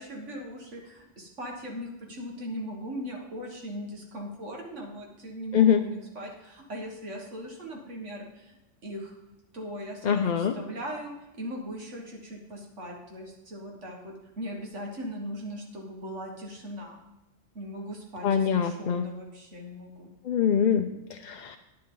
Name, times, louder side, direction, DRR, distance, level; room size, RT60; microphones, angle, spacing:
voice 1, 0.0-8.6 8.8-9.2 9.5-17.0 17.6-20.1, equal, 75° right, 0 dB, 2.0 m, -39 dB
voice 2, 5.5-5.8 10.0-10.5 18.2-19.1 20.2-20.9 21.2-21.6, left 8 dB, 55° left, 5 dB, 0.5 m, -23 dB
10.5 x 9.5 x 3.9 m, 0.98 s
omnidirectional pair, 1.2 m